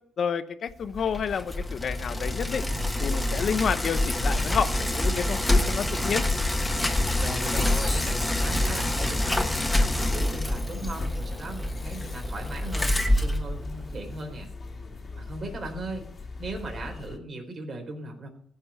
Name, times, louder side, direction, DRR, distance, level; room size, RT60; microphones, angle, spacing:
voice 1, 0.2-2.6 3.0-6.2, left 7 dB, 55° left, 12 dB, 0.8 m, -29 dB
sound 1, 0.7-17.2, left 4 dB, 40° left, 1.9 m, -40 dB
Bicycle, 0.9-14.1, left 1 dB, 10° left, 1.6 m, -26 dB
voice 2, 7.2-14.5 15.1-16.1 16.4-18.3, right 2 dB, 45° right, 3 dB, 3.9 m, -38 dB
15.5 x 5.3 x 8.2 m, 0.64 s
cardioid pair, 90°, 0 cm